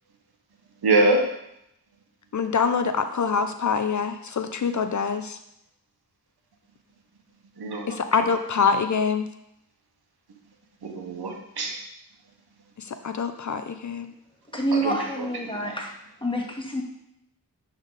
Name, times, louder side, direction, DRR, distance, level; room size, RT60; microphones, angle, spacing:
voice 1, 0.8-1.2 7.6-8.0 10.8-11.8 14.7-15.0 15.4-15.7, right 2 dB, 85° right, 2 dB, 1.2 m, -24 dB
voice 2, 2.3-5.4 7.9-9.3 12.8-14.1, left 6 dB, 50° left, 9 dB, 0.6 m, -25 dB
voice 3, 14.5-15.9 16.2-16.8, right 1 dB, 15° left, -1 dB, 1.8 m, -27 dB
9.9 x 3.7 x 4.0 m, 0.79 s
cardioid pair, 55°, 38 cm